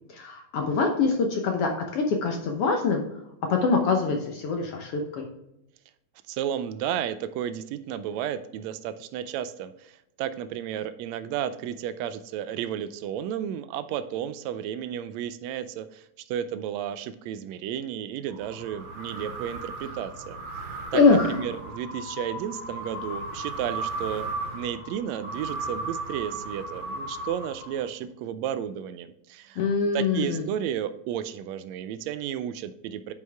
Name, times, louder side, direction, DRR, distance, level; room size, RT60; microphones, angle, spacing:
voice 1, 0.1-3.0 3.5-5.3 20.9-21.4 29.6-30.4, left 4 dB, 70° left, 3 dB, 1.5 m, -24 dB
voice 2, 6.3-20.4 20.9-29.6 29.9-33.1, right 10 dB, 80° right, 12 dB, 1.6 m, -33 dB
sound 1, 18.3-28.0, right 2 dB, 60° right, 2.8 m, -36 dB
9.3 x 5.4 x 3.4 m, 0.85 s
omnidirectional pair, 3.6 m